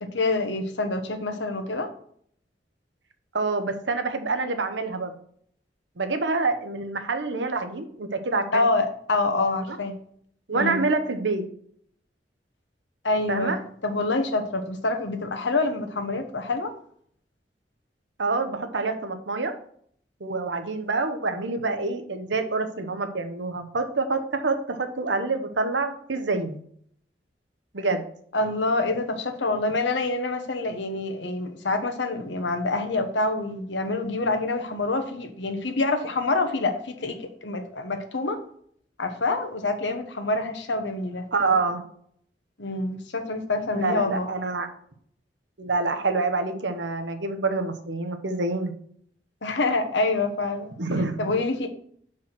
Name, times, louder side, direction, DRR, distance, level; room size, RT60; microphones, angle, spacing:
voice 1, 0.0-1.9 8.5-9.9 10.5-10.8 13.0-13.6 13.8-16.7 28.3-38.4 39.0-41.3 42.6-44.3 49.4-50.7 51.2-51.7, left 3 dB, 85° left, 7 dB, 1.1 m, -26 dB
voice 2, 3.3-5.1 6.0-8.6 9.7-9.8 10.5-11.4 13.3-13.6 18.2-19.5 20.2-26.6 27.7-28.0 41.3-41.8 43.7-44.7 45.6-48.7 50.8-51.2, right 3 dB, 85° right, 7 dB, 1.0 m, -27 dB
5.8 x 4.8 x 6.0 m, 0.64 s
head